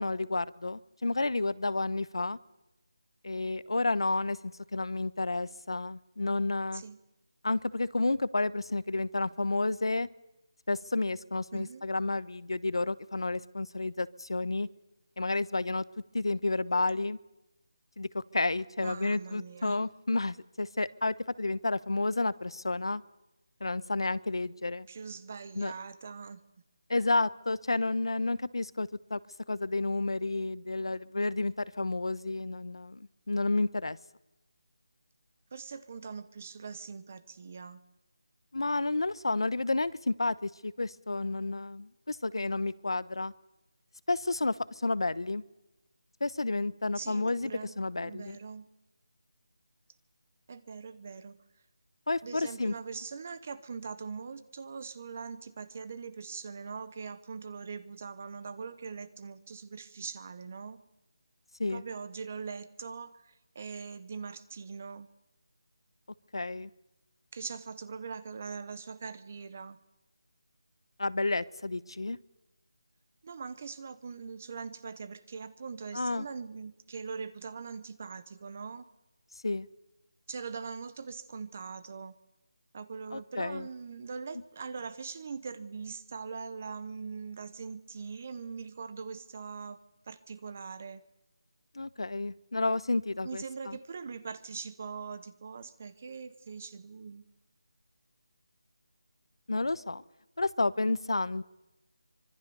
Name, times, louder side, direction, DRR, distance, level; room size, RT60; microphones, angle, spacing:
voice 1, 0.0-2.4 3.2-6.8 7.4-10.1 10.7-14.7 15.2-15.8 16.1-17.2 18.0-23.0 23.6-24.9 25.6-25.7 26.9-29.2 29.5-34.0 38.5-43.3 44.1-44.6 44.8-45.4 46.2-47.5 47.8-48.4 52.1-52.7 61.6-61.8 66.3-66.7 71.0-72.2 75.9-76.2 79.4-79.7 83.1-83.7 91.7-93.8 99.5-100.0 100.4-101.4, left 2 dB, 85° left, 18 dB, 1.1 m, -31 dB
voice 2, 11.5-11.9 18.8-19.8 24.9-26.4 35.5-37.8 46.9-48.7 50.5-51.4 52.2-60.8 61.7-65.1 67.3-69.8 73.2-78.9 80.3-82.2 82.7-89.8 90.1-91.0 93.2-97.3, right 5 dB, 20° right, 14 dB, 0.9 m, -42 dB
25.0 x 24.5 x 7.0 m, 0.98 s
figure-of-eight pair, 180°, 3 cm